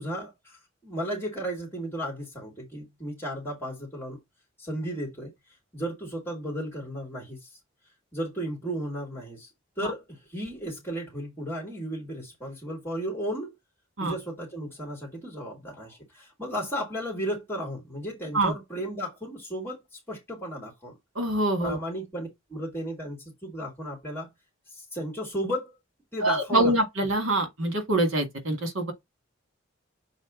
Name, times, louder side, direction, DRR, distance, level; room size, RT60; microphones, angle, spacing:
voice 1, 0.0-4.2 4.6-7.6 8.1-9.5 9.8-13.5 14.0-20.9 21.6-24.3 24.7-25.7 26.1-26.7, equal, 10° left, 2.6 m, -34 dB
voice 2, 21.2-21.8 26.2-28.9, right 1 dB, 80° right, 2.2 m, -25 dB
7.2 x 4.0 x 3.9 m
head